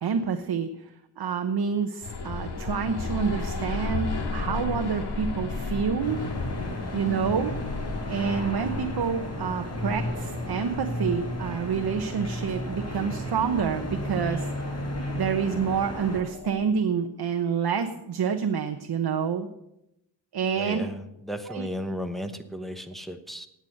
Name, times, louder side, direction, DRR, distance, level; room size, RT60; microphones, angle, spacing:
voice 1, 0.0-6.2 6.9-7.6 8.1-14.5 15.1-19.5 20.3-20.9 21.5-21.7, right 6 dB, 60° right, 6 dB, 1.0 m, -28 dB
sound 1, 2.0-16.7, left 3 dB, 60° left, 2.1 m, -35 dB
sound 2, 6.0-16.2, equal, 35° left, 5.1 m, -34 dB
voice 2, 20.6-23.5, equal, ahead, 6 dB, 0.9 m, -34 dB
18.5 x 7.9 x 6.6 m, 0.85 s
wide cardioid pair, 170°, 44 cm